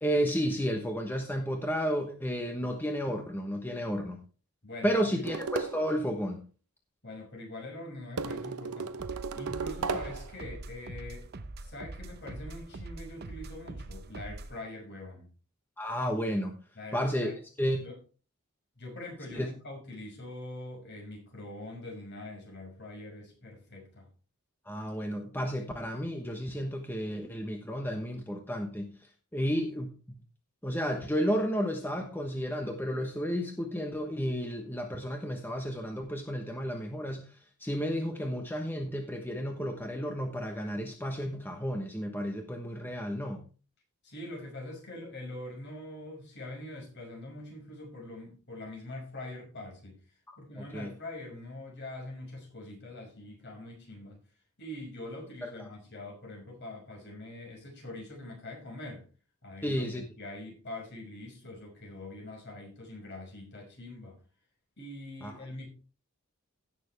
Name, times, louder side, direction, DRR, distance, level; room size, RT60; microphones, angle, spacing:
voice 1, 0.0-4.2 4.8-6.4 15.8-16.6 16.9-17.3 17.6-17.8 19.3-19.5 24.6-29.9 30.6-43.4 50.3-50.9 55.4-55.7 59.6-60.0 65.2-65.4, equal, 10° left, 3 dB, 1.0 m, -32 dB
voice 2, 4.6-5.2 7.0-9.0 9.3-11.3 11.6-15.3 16.7-17.4 17.7-17.9 18.8-24.0 44.0-50.0 50.4-54.2 54.6-59.0 59.4-64.2 64.8-65.7, left 1 dB, 50° left, 0 dB, 5.8 m, -43 dB
sound 1, 5.2-5.9 8.2-10.3, right 5 dB, 90° right, 0.8 m, -35 dB
sound 2, 9.0-14.6, right 2 dB, 45° right, 0.7 m, -43 dB
17.0 x 6.8 x 3.4 m, 0.36 s
head